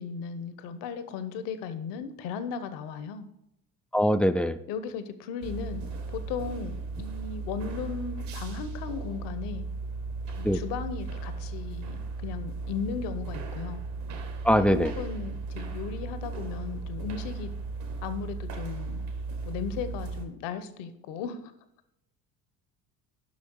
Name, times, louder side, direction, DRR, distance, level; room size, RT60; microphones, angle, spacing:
voice 1, 0.0-3.3 4.7-5.8 6.1-9.7 10.4-13.8 14.5-17.5 18.0-19.0 19.4-21.5, left 6 dB, 65° left, 12 dB, 1.1 m, -36 dB
voice 2, 3.9-4.6 10.4-10.6 14.4-14.9, equal, 5° left, 10 dB, 0.3 m, -22 dB
sound 1, 5.4-20.3, right 3 dB, 65° right, 1.9 m, -36 dB
10.5 x 5.9 x 4.6 m, 0.84 s
hypercardioid pair, 65°, 46 cm